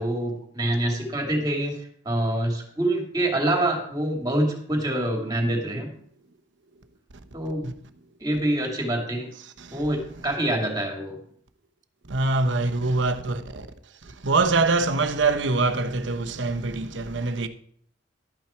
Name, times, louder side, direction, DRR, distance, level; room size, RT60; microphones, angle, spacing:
voice 1, 0.0-1.8 2.0-5.9 7.3-7.6 8.2-9.3 9.7-11.2, right 1 dB, 20° right, 2.9 m, -26 dB
voice 2, 12.1-13.7 14.2-17.5, right 3 dB, 80° right, 1.0 m, -24 dB
12.5 x 8.9 x 4.5 m
head